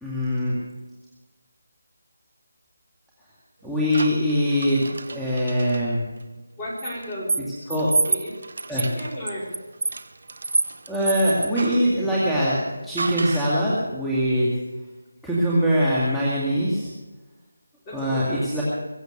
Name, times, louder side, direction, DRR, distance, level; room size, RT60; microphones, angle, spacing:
voice 1, 0.0-0.5 3.6-6.1 7.7-7.9 8.7-8.8 10.9-14.5 15.2-16.9 17.9-18.6, equal, ahead, -10 dB, 2.2 m, -23 dB
sound 1, 3.9-5.8 6.8-11.9 13.0-13.6, right 3 dB, 60° right, 1.0 m, -29 dB
voice 2, 6.6-7.4 8.0-8.3 8.7-9.5 17.8-18.5, left 1 dB, 20° left, -5 dB, 5.1 m, -34 dB
22.5 x 7.9 x 6.7 m, 1.2 s
figure-of-eight pair, 165°, 0 cm